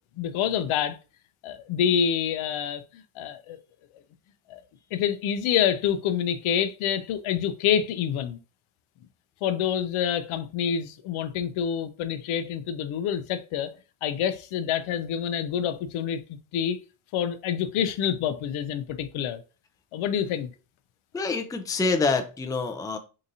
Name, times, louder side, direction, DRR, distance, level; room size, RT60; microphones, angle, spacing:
voice 1, 0.2-1.0 1.4-3.6 4.5-4.6 4.9-8.4 9.4-13.7 14.0-16.8 17.1-19.4 19.9-20.5, left 9 dB, 75° left, 0.6 m, -27 dB
voice 2, 21.1-23.0, left 4 dB, 10° left, 0.4 m, -26 dB
3.8 x 2.7 x 2.6 m
cardioid pair, 75°, 50 cm